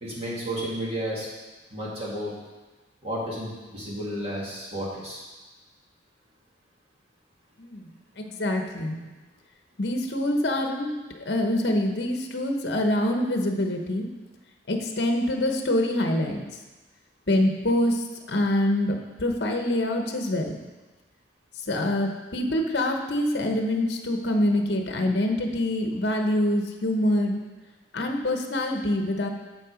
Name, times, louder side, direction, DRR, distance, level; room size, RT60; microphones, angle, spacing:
voice 1, 0.0-1.3 1.7-2.3 3.0-5.2, equal, 35° right, -6 dB, 2.3 m, -32 dB
voice 2, 7.6-9.0 9.8-14.1 14.7-16.4 17.3-20.6 21.7-27.4 27.9-29.3, left 1 dB, 65° left, 3 dB, 1.0 m, -25 dB
7.6 x 7.1 x 5.0 m, 1.2 s
head